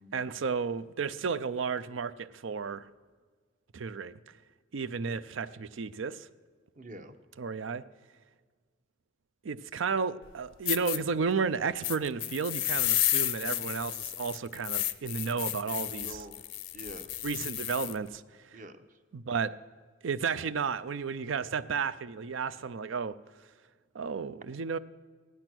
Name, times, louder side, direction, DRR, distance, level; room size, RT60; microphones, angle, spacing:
voice 1, 0.1-2.8 3.7-4.2 4.7-6.3 7.4-7.8 9.4-16.2 17.2-18.2 18.5-18.6 19.1-19.5 20.0-23.2 23.9-24.8, right 5 dB, 90° right, 0.5 m, -33 dB
voice 2, 6.8-7.2 15.7-16.4 16.7-17.3 18.5-19.0, right 1 dB, 45° right, 0.8 m, -47 dB
sound 1, 10.2-10.3 10.7-11.0 11.8-18.0, left 14 dB, 85° left, 0.6 m, -32 dB
15.5 x 10.5 x 6.1 m
head